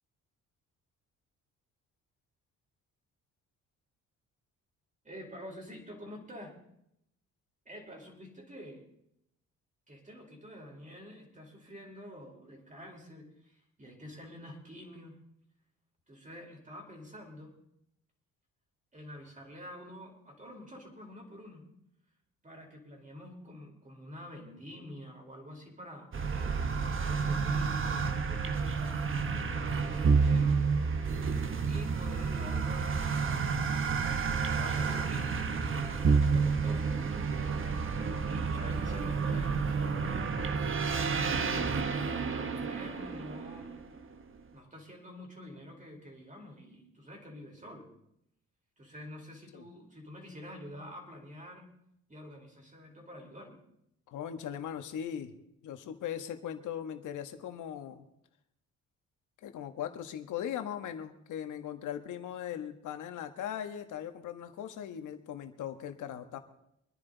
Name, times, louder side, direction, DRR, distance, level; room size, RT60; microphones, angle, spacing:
voice 1, 5.0-6.6 7.6-8.8 9.9-15.2 16.1-17.6 18.9-21.7 22.4-26.1 26.8-30.6 31.7-33.6 34.0-37.1 38.3-41.7 42.2-43.7 44.5-47.9 48.8-51.7 52.1-53.6, equal, 25° right, 1 dB, 4.6 m, -48 dB
sound 1, 26.1-44.1, right 5 dB, 45° right, 1.4 m, -30 dB
voice 2, 54.1-55.3 55.6-58.0 59.4-66.4, left 9 dB, 80° left, 7 dB, 1.6 m, -39 dB
25.0 x 10.5 x 4.0 m, 0.78 s
cardioid pair, 90°, 30 cm